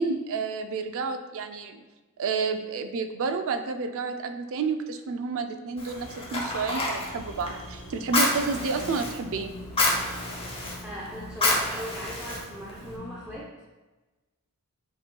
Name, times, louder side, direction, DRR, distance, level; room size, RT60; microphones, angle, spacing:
voice 1, 0.0-1.8 2.2-9.5, right 4 dB, 60° right, 7 dB, 0.4 m, -30 dB
Fire, 5.8-13.0, left 2 dB, 25° left, 0.8 m, -30 dB
sound 1, 5.9-13.4, left 1 dB, 50° left, 0.9 m, -44 dB
voice 2, 10.8-13.5, equal, 5° right, -7 dB, 0.6 m, -38 dB
7.5 x 3.0 x 2.2 m, 1.2 s
head